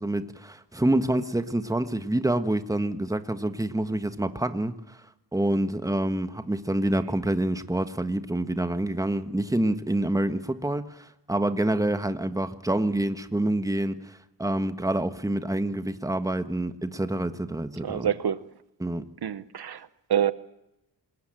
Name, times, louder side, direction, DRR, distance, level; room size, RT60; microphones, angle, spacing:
voice 1, 0.0-5.0 5.3-18.1 18.8-19.0, right 1 dB, 10° right, 1.5 m, -27 dB
voice 2, 17.8-18.4 19.2-20.3, right 9 dB, 65° right, 1.1 m, -27 dB
27.0 x 20.5 x 9.0 m
wide cardioid pair, 100°, 42 cm